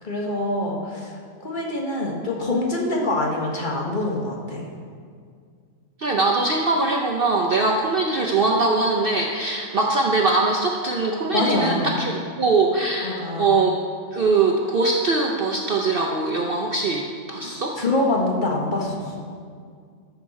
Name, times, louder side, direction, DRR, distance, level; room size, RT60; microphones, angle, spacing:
voice 1, 0.0-4.7 11.3-11.9 13.0-13.6 17.4-19.3, left 2 dB, 35° left, -1 dB, 1.5 m, -25 dB
voice 2, 6.0-13.8 14.1-17.8, right 3 dB, 50° right, 0 dB, 0.7 m, -22 dB
13.0 x 6.5 x 4.2 m, 2.1 s
omnidirectional pair, 1.5 m